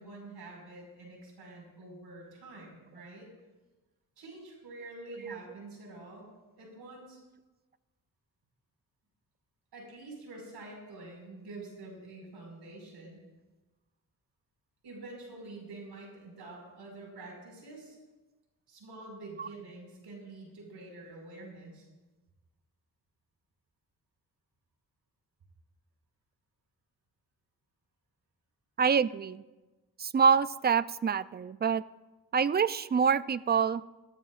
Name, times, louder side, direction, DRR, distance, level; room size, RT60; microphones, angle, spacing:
voice 1, 0.0-3.3 4.2-7.2 9.7-13.2 14.8-18.0 18.7-21.9, right 2 dB, 80° right, -1 dB, 5.2 m, -47 dB
voice 2, 28.8-29.4 30.0-31.8 32.3-33.8, right 6 dB, 25° right, 16 dB, 0.4 m, -26 dB
20.0 x 15.5 x 2.5 m, 1.2 s
cardioid pair, 90°, 39 cm